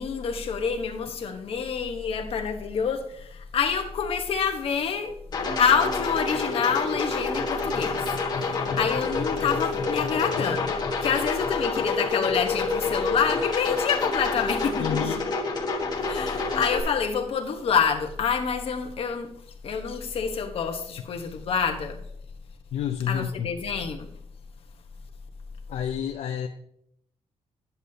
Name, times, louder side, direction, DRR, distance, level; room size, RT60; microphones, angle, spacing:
voice 1, 0.0-5.2 5.6-10.7 11.0-15.1 16.0-19.3 19.6-22.0 23.1-24.1, left 6 dB, 55° left, 1.1 m, -27 dB
sound 1, 5.3-16.8, left 4 dB, 35° left, 1.3 m, -28 dB
voice 2, 14.8-15.2 22.7-23.5 25.7-26.5, left 9 dB, 70° left, 0.5 m, -29 dB
10.0 x 8.0 x 2.8 m
cardioid pair, 140°, 12 cm